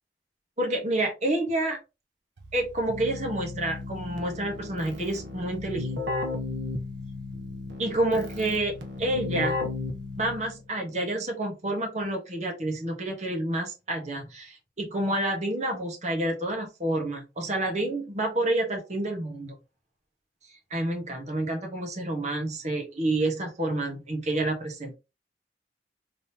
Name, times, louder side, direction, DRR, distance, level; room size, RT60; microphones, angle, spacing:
voice 1, 0.6-1.8 2.5-5.9 7.8-9.6 10.2-19.5 20.7-24.9, right 1 dB, 40° right, 1 dB, 1.5 m, -29 dB
Keyboard (musical), 2.4-10.7, left 2 dB, 85° right, 1.0 m, -34 dB
3.8 x 3.5 x 2.9 m, 0.27 s
head